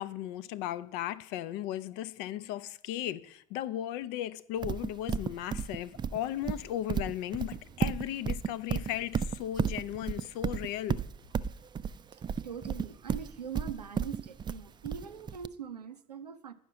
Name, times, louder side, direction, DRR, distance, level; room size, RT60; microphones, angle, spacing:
voice 1, 0.0-11.0, left 12 dB, 60° left, 0.5 m, -36 dB
Livestock farm animals working animals, 4.6-15.5, right 7 dB, 20° right, 0.4 m, -33 dB
voice 2, 12.1-16.5, right 8 dB, 90° right, 0.6 m, -42 dB
10.0 x 5.8 x 5.6 m
figure-of-eight pair, 65°, 20 cm